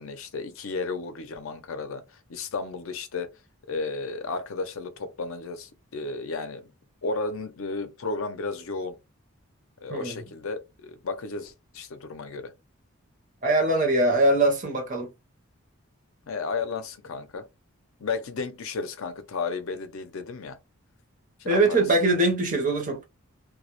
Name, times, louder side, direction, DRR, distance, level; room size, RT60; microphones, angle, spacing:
voice 1, 0.0-2.0 2.3-3.3 3.7-6.7 7.0-9.0 9.8-12.5 16.3-17.4 18.0-20.6 21.4-21.8, left 4 dB, 70° left, 0.5 m, -33 dB
voice 2, 9.9-10.2 13.4-15.1 21.4-23.0, right 2 dB, 35° right, 0.6 m, -22 dB
2.2 x 2.0 x 2.9 m
head